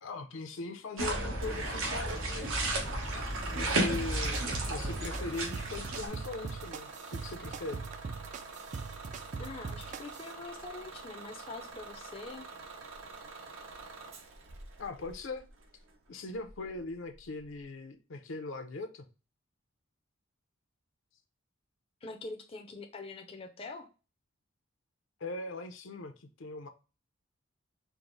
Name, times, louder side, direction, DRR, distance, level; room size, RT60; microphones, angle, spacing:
voice 1, 0.0-2.8 3.5-7.8 14.8-15.4 16.1-19.1 25.2-26.7, left 3 dB, 75° left, 0.6 m, -40 dB
sound 1, 1.0-6.1, right 1 dB, 85° right, 1.3 m, -33 dB
Bus / Engine starting, 1.4-17.6, right 3 dB, 70° right, 0.8 m, -47 dB
sound 2, 3.9-10.3, right 5 dB, 40° right, 0.3 m, -42 dB
voice 2, 9.4-12.5 22.0-23.9, left 3 dB, 30° left, 0.5 m, -44 dB
4.6 x 2.0 x 3.8 m
head